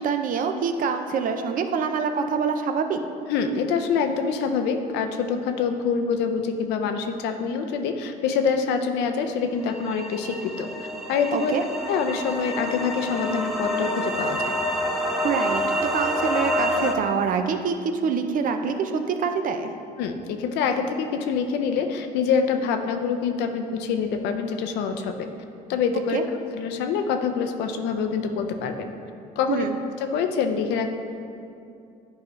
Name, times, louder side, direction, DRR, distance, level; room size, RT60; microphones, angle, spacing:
voice 1, 0.0-3.0 11.3-11.6 15.2-17.8 18.0-19.7 26.1-26.2 29.5-29.8, right 6 dB, 55° right, 7 dB, 0.6 m, -25 dB
voice 2, 3.3-10.7 11.1-11.5 11.9-14.5 20.0-25.3 25.7-26.2 26.5-28.9 29.4-29.7 30.0-30.9, left 6 dB, 90° left, 6 dB, 0.6 m, -25 dB
sound 1, 9.7-16.9, equal, ahead, 0.7 m, -27 dB
10.5 x 4.8 x 3.1 m, 2.6 s
cardioid pair, 110°, 17 cm